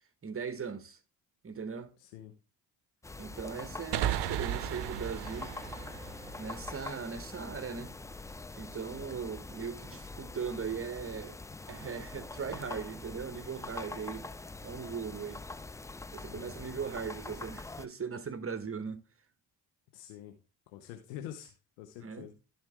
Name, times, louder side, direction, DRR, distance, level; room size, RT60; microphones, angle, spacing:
voice 1, 0.2-1.0 1.4-1.9 3.2-5.6 6.4-8.0 8.6-11.4 11.7-14.2 14.6-15.4 16.1-19.0 22.0-22.3, right 6 dB, 30° right, 1.1 m, -39 dB
voice 2, 2.0-2.3 8.9-9.2 16.3-16.8 19.9-20.4 20.7-22.3, left 11 dB, 85° left, 1.0 m, -47 dB
sound 1, 3.0-17.9, left 3 dB, 10° left, 0.3 m, -44 dB
sound 2, 3.9-7.4, right 12 dB, 60° right, 0.7 m, -36 dB
12.0 x 4.4 x 3.6 m
hypercardioid pair, 55°, 47 cm